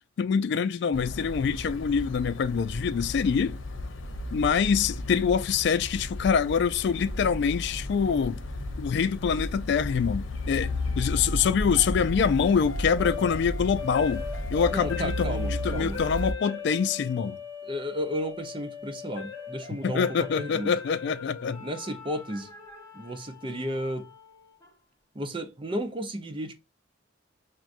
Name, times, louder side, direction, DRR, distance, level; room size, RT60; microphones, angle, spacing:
voice 1, 0.2-3.6 4.3-8.4 8.8-14.2 14.5-17.4 19.8-21.6, left 6 dB, 60° left, 0.3 m, -25 dB
sound 1, 0.9-16.3, left 1 dB, 85° left, 0.7 m, -34 dB
sound 2, 10.6-24.7, left 6 dB, 15° left, 0.8 m, -40 dB
voice 2, 14.7-16.0 17.6-20.7 21.6-22.5 22.9-24.1 25.1-26.5, equal, 25° right, 0.6 m, -33 dB
6.0 x 2.2 x 2.5 m
head